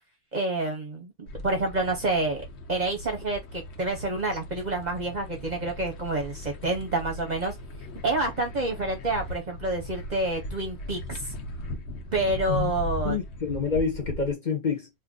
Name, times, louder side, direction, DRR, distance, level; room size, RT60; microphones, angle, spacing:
voice 1, 0.3-7.5 8.0-11.2 12.1-13.2, right 2 dB, 45° right, 0.8 m, -28 dB
sound 1, 1.3-14.3, left 1 dB, 70° left, 0.9 m, -38 dB
voice 2, 13.0-14.9, left 5 dB, 40° left, 1.0 m, -28 dB
2.6 x 2.5 x 3.6 m
omnidirectional pair, 1.2 m